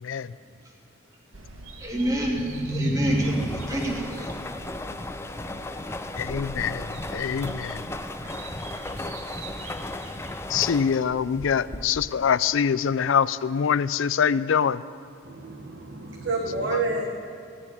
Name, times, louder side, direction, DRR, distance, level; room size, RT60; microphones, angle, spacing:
sound 1, 1.3-10.7, right 2 dB, 75° right, 1.3 m, -44 dB
voice 1, 1.8-4.3, right 1 dB, 15° right, -2 dB, 2.3 m, -26 dB
sound 2, 3.0-12.3, left 2 dB, 15° left, 0.4 m, -36 dB
voice 2, 6.2-6.9 7.1-7.8 10.5-14.8, left 7 dB, 70° left, 17 dB, 0.4 m, -24 dB
voice 3, 15.2-17.1, right 3 dB, 60° right, 0 dB, 1.1 m, -29 dB
16.5 x 7.3 x 9.8 m, 2.4 s
head